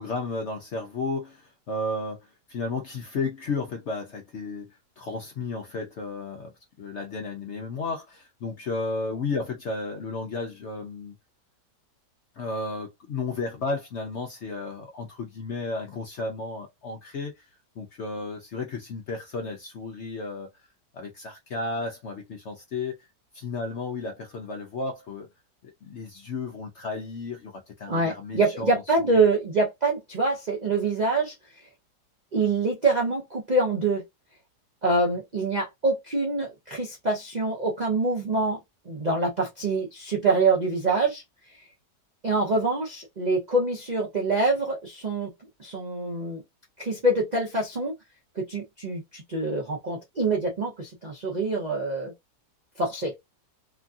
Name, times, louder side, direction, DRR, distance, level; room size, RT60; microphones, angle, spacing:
voice 1, 0.0-4.7 5.0-6.5 6.8-11.1 12.3-17.5 17.8-20.5 20.9-23.1 23.3-25.3 25.6-28.7 29.0-29.2, left 3 dB, 80° left, 0.6 m, -33 dB
voice 2, 27.9-31.3 32.3-34.0 34.8-38.6 38.9-41.2 42.2-45.3 45.6-46.4 46.8-47.9 48.4-52.1 52.8-53.1, right 3 dB, 70° right, 0.4 m, -25 dB
3.0 x 2.6 x 2.4 m
omnidirectional pair, 1.9 m